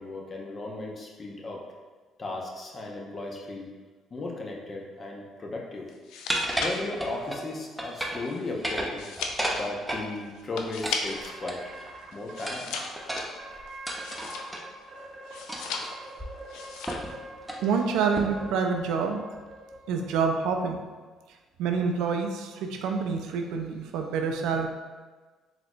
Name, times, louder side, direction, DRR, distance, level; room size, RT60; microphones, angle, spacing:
voice 1, 0.0-1.6 2.2-3.7 4.1-5.9 6.6-9.1 9.5-11.7 12.1-12.7, left 2 dB, 40° left, -1 dB, 0.7 m, -36 dB
sound 1, 5.9-11.4 11.7-14.8 15.3-16.2 16.5-17.2 17.4-17.8, left 5 dB, 80° left, 0.3 m, -37 dB
sound 2, 6.3-7.4 7.8-8.3 8.5-10.1 10.8-11.8 12.5-14.7 15.5-15.8 16.2-16.3 16.9-17.1 17.4-17.7 18.2-18.5, right 1 dB, 10° right, 0.5 m, -32 dB
sound 3, 11.1-12.4 12.9-13.0 13.4-14.6 14.9-20.1, right 2 dB, 50° right, 0.7 m, -44 dB
voice 2, 17.6-19.2 19.9-20.8 21.6-24.7, right 5 dB, 80° right, 4 dB, 0.3 m, -27 dB
3.9 x 3.0 x 2.2 m, 1.3 s
supercardioid pair, 65°, 0 cm